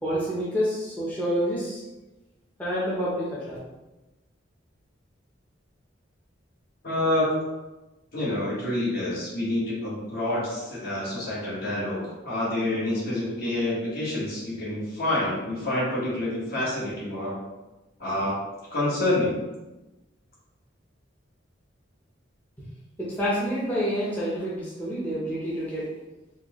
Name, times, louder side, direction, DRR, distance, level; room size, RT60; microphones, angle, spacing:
voice 1, 0.0-1.8 2.6-3.6 22.6-22.7 23.0-25.9, equal, 10° left, -9 dB, 0.7 m, -28 dB
voice 2, 6.8-7.3 8.1-17.4 18.0-18.4 18.7-19.4, left 1 dB, 55° left, -6 dB, 1.4 m, -27 dB
4.2 x 2.2 x 3.0 m, 1.1 s
head